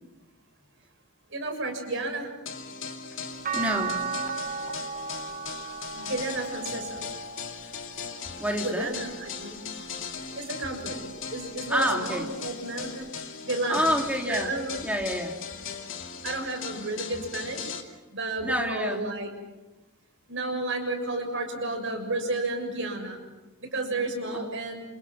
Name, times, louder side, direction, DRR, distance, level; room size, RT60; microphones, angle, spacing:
voice 1, 1.3-2.3 5.9-7.0 8.6-9.6 10.3-13.1 13.4-13.9 14.3-14.9 16.2-19.3 20.3-23.2 23.6-24.8, right 2 dB, 60° right, 4 dB, 6.7 m, -32 dB
sound 1, 2.5-17.8, left 6 dB, 60° left, 2.7 m, -39 dB
sound 2, 3.4-9.7 10.3-11.7 13.1-13.2, right 5 dB, 40° right, 1.0 m, -37 dB
voice 2, 3.5-4.0 8.4-8.9 11.7-12.3 13.7-14.5 14.8-15.4 18.4-19.1 24.3-24.4, equal, 5° right, 1 dB, 3.4 m, -28 dB
28.5 x 28.5 x 6.1 m, 1.1 s
head